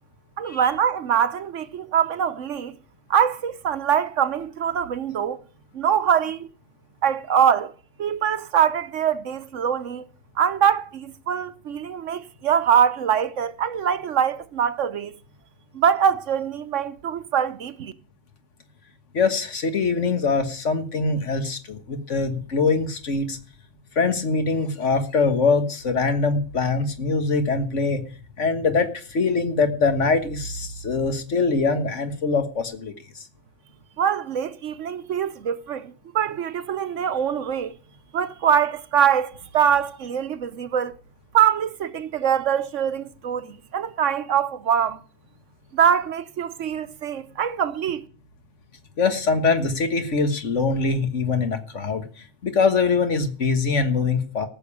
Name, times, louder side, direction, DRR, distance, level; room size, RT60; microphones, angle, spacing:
voice 1, 0.4-2.8 3.1-5.4 5.7-6.5 7.0-7.7 8.0-10.1 10.4-15.2 15.7-17.9 34.0-37.7 38.1-40.9 41.3-45.0 45.7-48.0, right 8 dB, 70° right, 1.1 m, -23 dB
voice 2, 19.1-23.4 24.0-28.0 28.4-33.2 49.0-54.5, left 4 dB, 65° left, 1.8 m, -23 dB
14.5 x 6.9 x 8.6 m
omnidirectional pair, 1.4 m